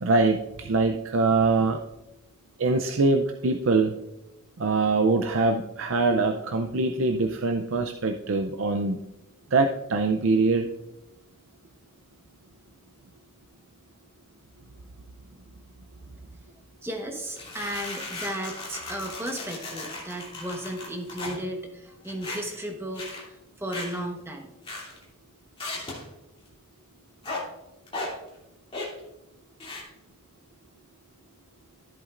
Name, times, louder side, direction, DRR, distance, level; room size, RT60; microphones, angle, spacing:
voice 1, 0.0-1.8 2.6-4.0 4.6-9.0 9.5-10.7, right 3 dB, 70° right, 5 dB, 0.5 m, -23 dB
voice 2, 16.8-23.0 23.6-24.5, right 1 dB, 10° right, 2 dB, 1.1 m, -34 dB
sound 1, 17.4-21.4 22.0-22.6 23.0-23.2 23.7-24.0 24.7-25.0 25.6-26.0 27.2-27.4 27.9-28.1 28.7-29.0 29.6-29.8, left 2 dB, 25° left, 2.8 m, -36 dB
14.0 x 8.2 x 2.5 m, 0.91 s
head